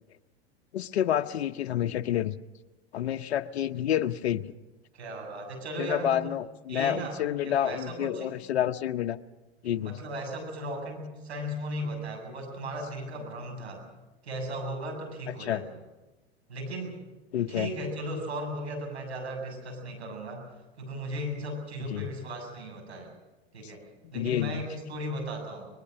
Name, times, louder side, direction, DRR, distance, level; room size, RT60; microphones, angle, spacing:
voice 1, 0.7-2.4 2.9-4.4 5.8-9.2 9.6-10.0 15.4-15.6 17.3-17.7 21.9-22.1 23.6-23.7 24.1-24.6, left 11 dB, 80° left, 8 dB, 0.9 m, -29 dB
voice 2, 4.9-6.3 6.7-7.2 7.4-8.3 9.7-13.8 14.2-15.6 16.5-17.0 17.5-20.5 20.8-23.1 23.5-23.8 24.1-25.7, equal, 90° right, 3 dB, 7.3 m, -36 dB
23.5 x 21.0 x 6.6 m, 1.1 s
hypercardioid pair, 100°, 32 cm